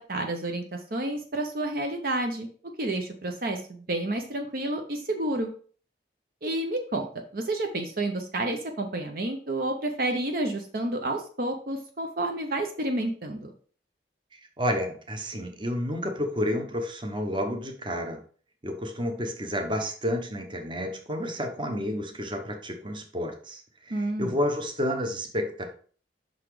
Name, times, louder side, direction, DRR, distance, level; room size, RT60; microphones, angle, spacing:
voice 1, 0.0-2.5 2.8-5.5 6.4-7.1 7.3-13.5 23.9-24.4, right 1 dB, 55° right, 4 dB, 0.7 m, -30 dB
voice 2, 14.3-18.2 18.6-25.7, equal, 25° right, 4 dB, 0.9 m, -30 dB
5.8 x 4.1 x 4.8 m, 0.44 s
head